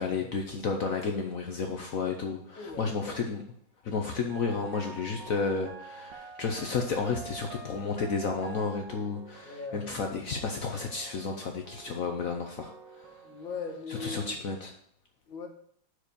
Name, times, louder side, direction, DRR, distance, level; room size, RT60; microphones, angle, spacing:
voice 1, 0.0-3.4 3.8-13.2 13.9-14.7, left 4 dB, 60° left, 3 dB, 0.9 m, -32 dB
voice 2, 2.6-3.2 9.4-10.0 13.2-14.4 15.3-15.5, left 4 dB, 75° left, 3 dB, 2.0 m, -39 dB
sound 1, 4.3-12.3 12.6-14.3, right 4 dB, 70° right, 1.4 m, -48 dB
6.1 x 4.9 x 6.7 m, 0.64 s
omnidirectional pair, 2.2 m